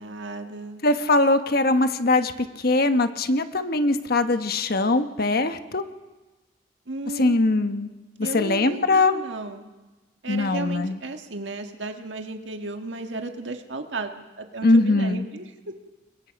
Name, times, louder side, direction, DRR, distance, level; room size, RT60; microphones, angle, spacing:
voice 1, 0.0-0.8 6.9-7.4 8.2-9.7 10.2-15.4, right 3 dB, 85° right, 5 dB, 1.7 m, -34 dB
voice 2, 0.8-5.8 7.2-7.9 8.2-9.2 10.3-11.0 14.6-15.2, left 2 dB, 55° left, 9 dB, 1.2 m, -21 dB
29.0 x 22.0 x 5.3 m, 1.2 s
head